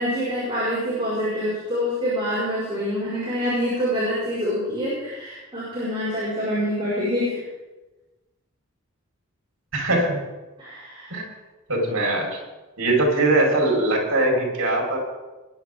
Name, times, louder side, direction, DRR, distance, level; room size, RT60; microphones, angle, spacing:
voice 1, 0.0-7.4 10.6-11.1, equal, 25° right, -10 dB, 5.4 m, -26 dB
voice 2, 9.7-10.2 11.1-11.3 11.7-12.4 12.8-15.0, right 2 dB, 75° right, -1 dB, 4.7 m, -21 dB
21.0 x 10.5 x 3.8 m, 1.1 s
head